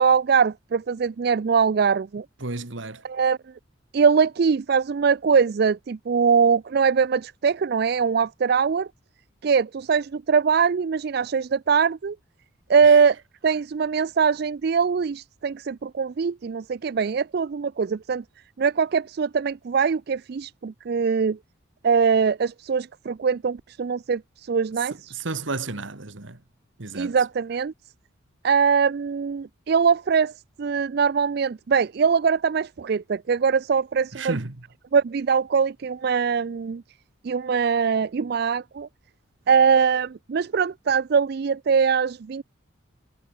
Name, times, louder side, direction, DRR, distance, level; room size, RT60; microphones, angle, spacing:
voice 1, 0.0-2.3 3.0-3.4 3.9-8.9 9.4-12.2 12.7-13.2 13.4-18.2 18.6-21.4 21.8-25.1 26.9-27.7 28.4-30.3 30.6-34.4 34.9-36.8 37.2-38.9 39.5-42.4, right 6 dB, 50° right, 0.4 m, -22 dB
voice 2, 2.4-3.0 12.8-13.0 25.1-26.4 26.8-27.2 34.1-34.6, right 3 dB, 65° right, 1.8 m, -32 dB
head